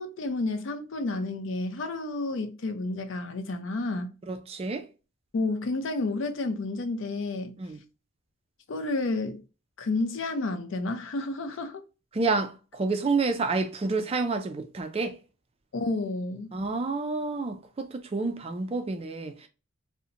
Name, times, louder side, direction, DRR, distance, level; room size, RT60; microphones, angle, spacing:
voice 1, 0.0-4.1 5.3-7.5 8.7-9.4 9.8-11.8 15.7-16.6, left 2 dB, 60° left, 0.4 m, -30 dB
voice 2, 4.3-4.9 7.6-7.8 12.1-15.2 16.5-19.5, right 3 dB, 30° right, 0.3 m, -29 dB
2.7 x 2.1 x 2.5 m
head